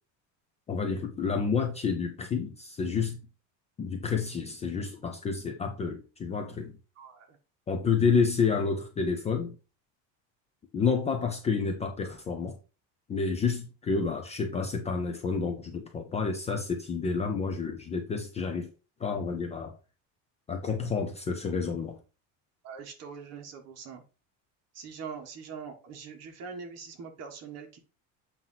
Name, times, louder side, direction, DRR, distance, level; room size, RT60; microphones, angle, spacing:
voice 1, 0.7-3.2 3.8-6.7 7.7-9.5 10.7-12.6 13.1-18.7 19.0-19.7 20.5-22.0, left 5 dB, 20° left, 0.5 m, -29 dB
voice 2, 22.6-24.0 24.7-27.8, right 6 dB, 45° right, 1.5 m, -42 dB
7.6 x 2.8 x 5.6 m
cardioid pair, 170°, 37 cm